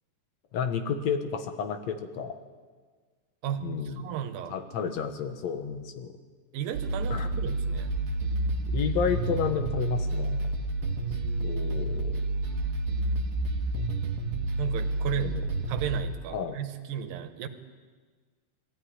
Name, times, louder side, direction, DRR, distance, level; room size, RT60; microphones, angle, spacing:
voice 1, 0.5-2.4 3.6-4.1 4.5-6.1 7.1-7.3 8.6-10.5 11.4-12.2 15.2-15.4 16.3-16.6, left 6 dB, 60° left, 8 dB, 2.2 m, -31 dB
voice 2, 3.4-4.6 6.5-8.0 11.0-11.8 14.6-15.4 15.7-17.5, right 9 dB, 85° right, 8 dB, 2.9 m, -35 dB
sound 1, 6.7-16.0, right 2 dB, 55° right, 2.2 m, -29 dB
20.5 x 14.5 x 10.0 m, 1.5 s
omnidirectional pair, 4.0 m